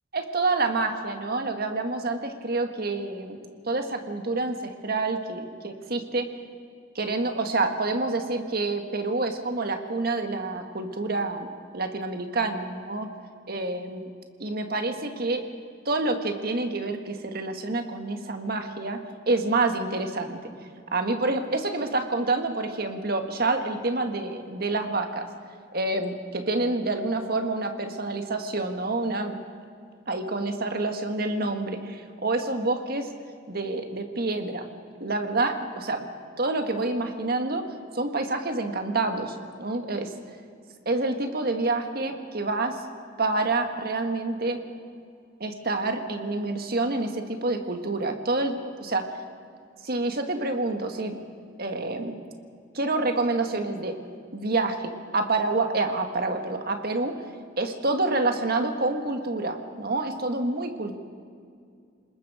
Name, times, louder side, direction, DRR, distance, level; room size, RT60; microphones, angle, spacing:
voice 1, 0.1-3.4 3.7-6.3 7.0-11.5 11.7-13.1 13.5-14.1 14.4-15.4 15.9-19.0 19.3-20.4 20.9-25.3 25.7-29.4 30.1-33.1 33.5-34.7 35.0-36.1 36.4-37.6 37.9-40.1 40.9-42.8 43.2-44.6 45.4-49.0 49.8-51.2 51.6-52.2 52.7-54.0 54.3-57.2 57.6-60.9, right 2 dB, 50° right, 5 dB, 1.7 m, -27 dB
28.0 x 20.0 x 5.0 m, 2.3 s
head